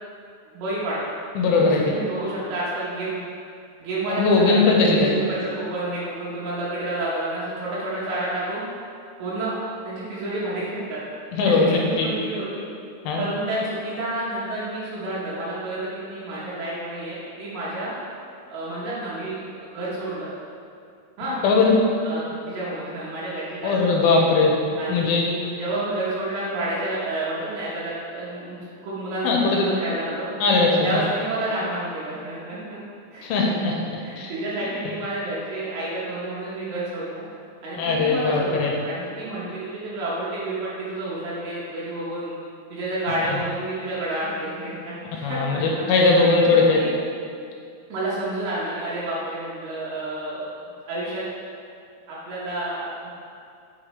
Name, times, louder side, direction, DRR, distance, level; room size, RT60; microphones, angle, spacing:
voice 1, 0.5-1.0 1.7-3.2 3.8-8.6 9.2-9.6 9.8-11.0 11.5-12.7 13.2-17.9 18.5-20.3 21.2-21.4 22.0-24.2 24.8-30.3 30.8-32.8 33.1-33.7 34.0-37.2 37.6-42.3 42.7-46.9 47.9-50.5 50.9-51.2 52.1-53.1, right 1 dB, 85° right, -8 dB, 2.9 m, -30 dB
voice 2, 1.4-1.8 4.1-5.1 11.3-12.1 13.1-13.3 21.4-21.8 23.6-24.5 24.9-25.2 29.2-29.6 30.4-31.0 33.2-33.8 34.2-34.3 37.7-38.7 43.3-43.4 45.2-46.8, left 3 dB, 85° left, -1 dB, 2.5 m, -19 dB
6.5 x 5.9 x 3.1 m, 2.4 s
omnidirectional pair, 4.4 m